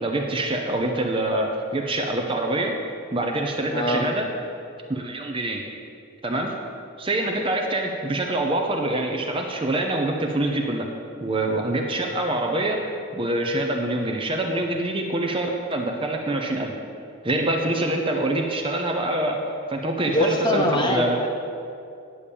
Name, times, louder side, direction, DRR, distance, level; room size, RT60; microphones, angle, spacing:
voice 1, 0.0-2.7 3.1-4.3 4.9-5.6 6.2-6.5 7.0-10.9 11.2-12.8 13.1-16.7 17.2-19.4 19.7-21.2, right 1 dB, 25° right, 2 dB, 0.7 m, -25 dB
voice 2, 3.7-4.0 20.1-21.3, equal, 20° left, 1 dB, 1.0 m, -23 dB
10.0 x 7.0 x 7.0 m, 2.5 s
head